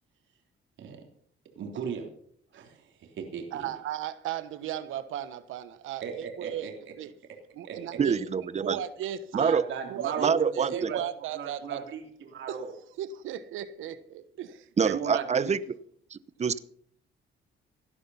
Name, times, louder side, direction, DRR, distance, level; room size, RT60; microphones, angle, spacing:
voice 1, 1.5-2.1 2.5-3.7 6.0-6.9 7.6-7.8 9.3-11.0 11.3-12.7 14.9-15.5, right 6 dB, 70° right, 3.3 m, -37 dB
voice 2, 3.5-6.7 7.0-7.1 7.6-8.2 8.6-9.5 9.9-11.8 12.5-12.6 13.0-15.2, right 10 dB, 90° right, 1.2 m, -36 dB
voice 3, 8.0-8.8 9.3-9.6 10.2-10.9 14.8-15.6 16.1-16.6, right 6 dB, 35° right, 0.9 m, -26 dB
17.0 x 11.5 x 5.7 m
cardioid pair, 90°, 20 cm